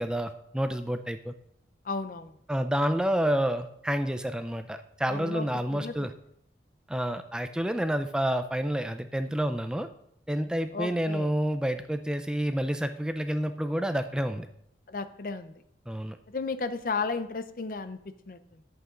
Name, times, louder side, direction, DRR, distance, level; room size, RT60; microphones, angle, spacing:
voice 1, 0.0-1.3 2.5-6.1 6.9-9.9 10.3-14.5 15.9-16.2, equal, 5° right, 9 dB, 0.3 m, -29 dB
voice 2, 1.8-2.4 5.1-6.1 10.7-11.3 14.9-15.6 16.3-18.0 18.3-18.6, left 4 dB, 50° left, 11 dB, 0.6 m, -34 dB
11.0 x 8.0 x 3.7 m, 0.73 s
head